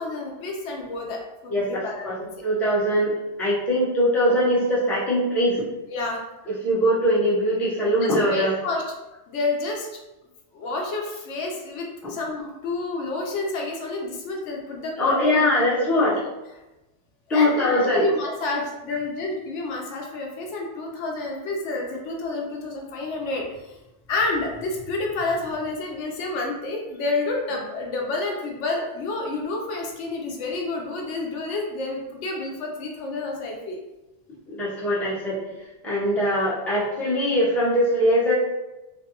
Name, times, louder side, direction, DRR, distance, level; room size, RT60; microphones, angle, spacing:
voice 1, 0.0-2.3 5.9-6.2 8.0-8.8 9.3-9.9 10.5-15.4 15.7-16.1 17.3-23.8 24.1-33.8, left 2 dB, 85° left, 0 dB, 0.9 m, -29 dB
voice 2, 1.5-2.2 2.4-3.1 3.4-5.6 6.5-8.6 12.0-12.1 15.0-16.2 17.3-18.0 34.5-35.4 35.8-38.3, equal, ahead, -8 dB, 0.5 m, -21 dB
2.5 x 2.3 x 2.8 m, 1.0 s
omnidirectional pair, 1.2 m